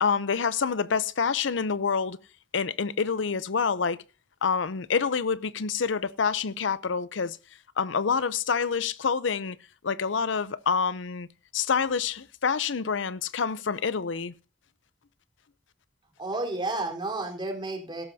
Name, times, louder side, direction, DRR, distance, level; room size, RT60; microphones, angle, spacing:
voice 1, 0.0-2.2 2.5-4.0 4.4-7.4 7.8-9.6 9.8-11.3 11.5-14.3, left 5 dB, 85° left, 0.7 m, -27 dB
voice 2, 16.2-18.0, right 2 dB, 25° right, 4.2 m, -31 dB
17.0 x 14.0 x 2.8 m
head